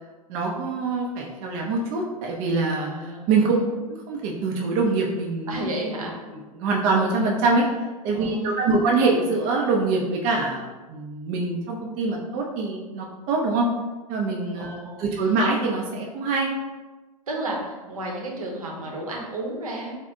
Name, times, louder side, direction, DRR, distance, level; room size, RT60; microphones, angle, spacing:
voice 1, 0.3-2.9 3.3-3.5 3.9-5.6 6.5-7.7 8.0-13.7 14.1-16.5, right 3 dB, 35° right, -1 dB, 0.4 m, -24 dB
voice 2, 2.8-3.7 5.5-6.2 8.1-8.8 14.6-15.0 17.3-19.9, right 1 dB, 70° right, -1 dB, 0.7 m, -32 dB
4.0 x 2.0 x 2.4 m, 1.2 s
figure-of-eight pair, 90°, 19 cm